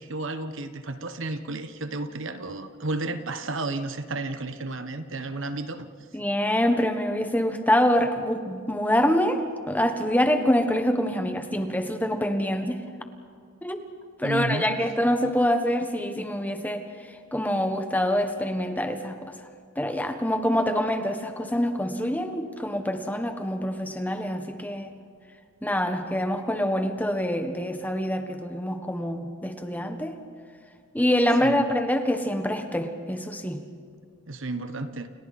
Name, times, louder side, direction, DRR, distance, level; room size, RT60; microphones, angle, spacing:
voice 1, 0.0-5.9 14.2-14.8 31.4-31.7 34.3-35.1, right 2 dB, 65° right, 9 dB, 1.3 m, -32 dB
voice 2, 6.1-12.8 13.6-13.8 14.2-16.8 17.3-19.3 19.8-24.9 25.6-30.2 30.9-33.6, equal, 10° left, 6 dB, 1.3 m, -25 dB
29.5 x 29.5 x 4.3 m, 2.2 s
head